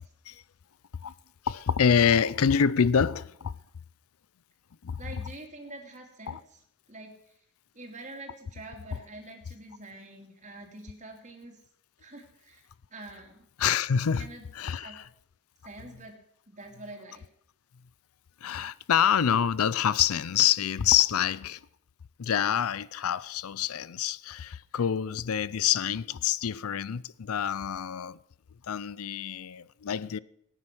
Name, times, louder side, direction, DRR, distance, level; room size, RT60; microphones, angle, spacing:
voice 1, 1.4-3.6 4.8-5.0 6.3-6.4 13.6-15.1 18.4-21.6 22.2-28.2 28.7-30.2, left 8 dB, 75° left, 0.5 m, -26 dB
voice 2, 5.0-6.6 6.9-7.4 7.7-11.6 12.0-12.6 12.9-13.5 14.2-15.0 15.6-16.2 16.5-17.2, right 2 dB, 35° right, 2.9 m, -46 dB
18.5 x 9.8 x 6.1 m
head